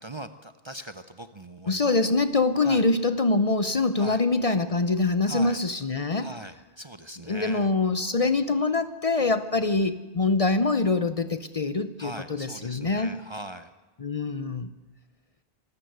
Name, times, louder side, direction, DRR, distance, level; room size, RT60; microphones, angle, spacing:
voice 1, 0.0-1.9 2.6-2.8 4.0-4.2 5.2-5.6 6.2-7.7 12.0-13.7, right 1 dB, 30° right, 10 dB, 0.7 m, -40 dB
voice 2, 1.7-6.3 7.3-13.1 14.0-14.7, left 3 dB, 40° left, 12 dB, 0.8 m, -24 dB
25.5 x 13.0 x 8.0 m, 1.2 s
omnidirectional pair, 1.1 m